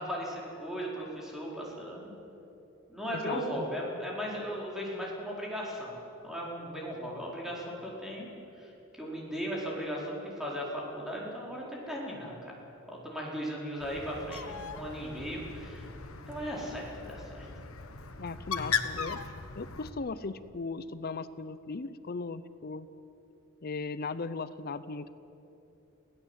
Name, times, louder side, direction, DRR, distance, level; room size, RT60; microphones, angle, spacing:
voice 1, 0.0-2.1 2.9-8.3 8.6-12.5 12.9-15.9 16.3-17.5, equal, ahead, -4 dB, 4.6 m, -37 dB
voice 2, 3.1-3.6 18.2-19.2 19.6-22.9 23.6-25.1, left 4 dB, 45° left, 14 dB, 0.6 m, -37 dB
Bird, 13.8-19.9, left 6 dB, 75° left, 1.3 m, -38 dB
23.5 x 17.0 x 8.2 m, 3.0 s
head